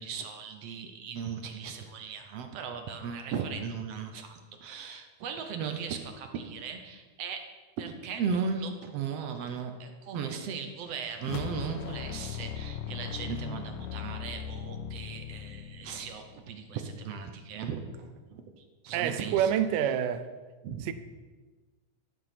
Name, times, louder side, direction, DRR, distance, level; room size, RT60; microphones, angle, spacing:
voice 1, 0.0-7.4 7.8-18.4 18.8-19.5 20.6-20.9, right 6 dB, 70° right, 1.6 m, -37 dB
sound 1, 11.2-16.6, left 9 dB, 80° left, 2.1 m, -39 dB
voice 2, 18.9-20.3 20.8-20.9, right 9 dB, 90° right, 2.3 m, -27 dB
12.5 x 7.4 x 5.8 m
omnidirectional pair, 3.7 m